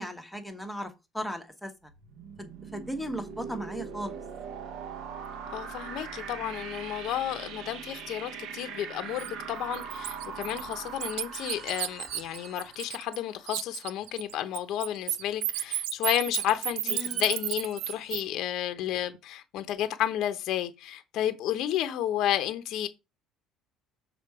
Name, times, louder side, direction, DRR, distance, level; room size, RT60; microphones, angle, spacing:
voice 1, 0.0-1.7 2.4-4.2 6.4-6.6 16.9-17.2, equal, ahead, 1.0 m, -37 dB
sound 1, 1.9-13.6, right 6 dB, 55° right, 0.9 m, -41 dB
voice 2, 5.5-22.9, left 11 dB, 50° left, 0.7 m, -31 dB
Bird, 9.2-9.3 9.7-13.2 13.5-18.2, right 14 dB, 90° right, 0.5 m, -33 dB
sound 2, 10.3-10.9 11.3-12.7 14.1-14.5 14.9-15.2 15.5-15.6 16.0-16.1 16.7-18.3, right 3 dB, 25° right, 1.3 m, -51 dB
6.8 x 3.7 x 4.8 m
cardioid pair, 165°, 0 cm